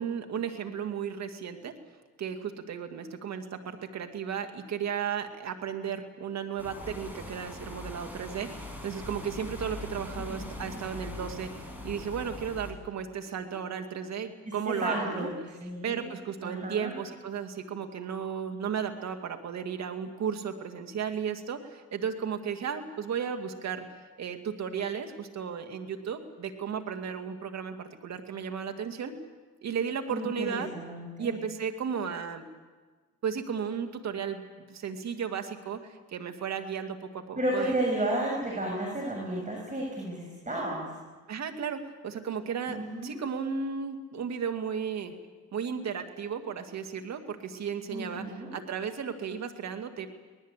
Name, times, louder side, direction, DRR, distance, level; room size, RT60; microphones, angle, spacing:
voice 1, 0.0-1.7 2.2-15.3 15.8-23.9 24.2-29.1 29.6-30.7 31.2-32.4 33.2-34.4 34.7-37.7 41.3-45.1 45.5-50.1, right 7 dB, 60° right, 6 dB, 2.5 m, -34 dB
sound 1, 6.6-12.7, left 1 dB, 5° right, 6.8 m, -41 dB
voice 2, 10.2-10.8 14.7-15.3 15.6-16.0 16.4-16.9 30.1-31.4 37.4-40.9 42.7-43.2 47.9-48.5, right 1 dB, 25° right, -1 dB, 7.1 m, -32 dB
23.5 x 19.5 x 8.4 m, 1.3 s
cardioid pair, 90°, 30 cm